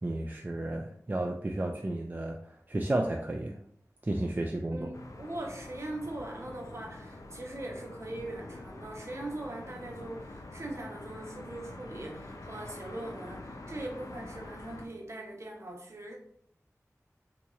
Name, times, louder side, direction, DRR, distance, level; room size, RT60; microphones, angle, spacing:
voice 1, 0.0-3.6 4.0-4.9, right 1 dB, 30° right, 2 dB, 0.4 m, -32 dB
voice 2, 4.7-16.2, right 1 dB, 55° right, 0 dB, 0.8 m, -41 dB
sound 1, 4.9-14.9, left 2 dB, 80° left, 0.4 m, -46 dB
4.0 x 2.9 x 2.4 m, 0.64 s
wide cardioid pair, 50°, 6 cm